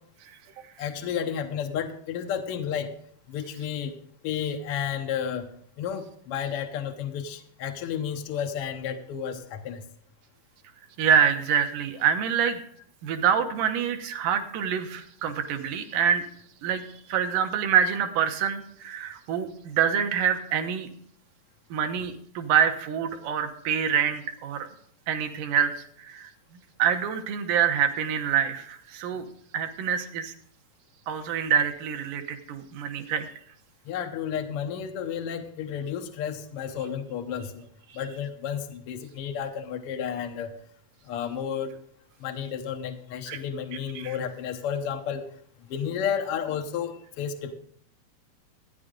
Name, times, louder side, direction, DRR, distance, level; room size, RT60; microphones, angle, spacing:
voice 1, 0.8-2.9 3.3-3.9 4.2-5.5 5.8-9.8 33.9-37.7 37.9-40.5 41.1-41.8 42.2-45.2 45.6-47.5, left 8 dB, 75° left, 5 dB, 1.3 m, -32 dB
voice 2, 11.0-12.6 13.0-16.2 16.6-16.8 17.1-20.9 21.7-24.7 25.1-26.3 26.8-29.3 29.5-30.3 31.1-33.3 43.3-43.4 44.0-44.2, right 8 dB, 80° right, 6 dB, 2.5 m, -26 dB
14.0 x 9.8 x 3.8 m, 0.62 s
omnidirectional pair, 3.8 m